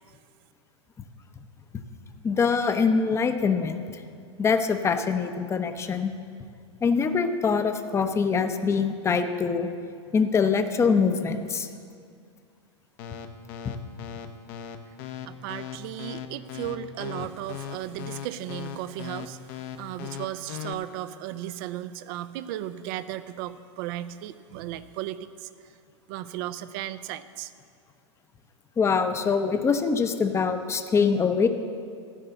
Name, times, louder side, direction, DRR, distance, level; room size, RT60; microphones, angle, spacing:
voice 1, 2.2-4.0 4.4-6.1 6.8-9.7 10.1-11.7 13.6-13.7 28.8-31.5, left 5 dB, 15° left, 8 dB, 0.7 m, -24 dB
sound 1, 13.0-20.7, left 11 dB, 50° left, 0.9 m, -37 dB
voice 2, 15.2-19.4 19.8-25.5 26.1-27.5, right 12 dB, 50° right, 13 dB, 0.5 m, -35 dB
14.5 x 5.4 x 7.0 m, 2.2 s
hypercardioid pair, 100°, 16 cm